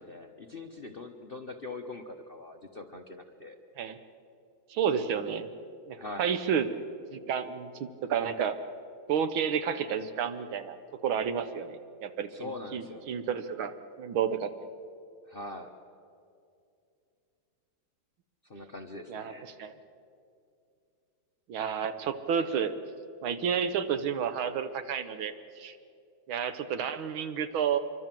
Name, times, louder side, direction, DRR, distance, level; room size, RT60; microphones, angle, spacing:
voice 1, 0.0-3.6 6.0-6.3 12.3-13.1 15.3-15.7 18.5-19.5, left 2 dB, 40° left, 5 dB, 0.9 m, -42 dB
voice 2, 4.7-5.5 5.9-6.7 7.1-8.6 9.1-10.8 11.0-14.5 19.1-19.3 19.6-19.7 21.5-22.7 23.2-25.8 26.3-27.8, right 7 dB, 75° right, 11 dB, 1.8 m, -31 dB
25.5 x 23.5 x 7.6 m, 2.5 s
omnidirectional pair, 2.3 m